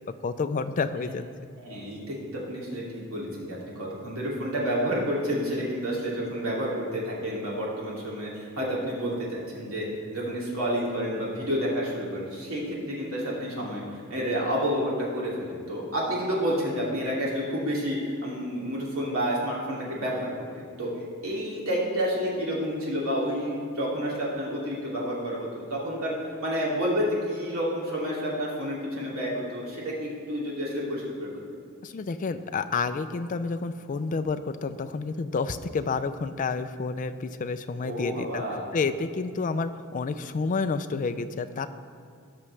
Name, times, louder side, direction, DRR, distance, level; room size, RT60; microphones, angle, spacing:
voice 1, 0.2-1.2 31.8-38.4 38.7-41.7, left 4 dB, 35° left, 10 dB, 0.4 m, -29 dB
voice 2, 1.6-20.3 20.6-20.9 21.2-26.1 26.4-31.3 37.8-38.6, equal, 70° right, -5 dB, 2.7 m, -30 dB
17.0 x 6.1 x 3.3 m, 2.3 s
head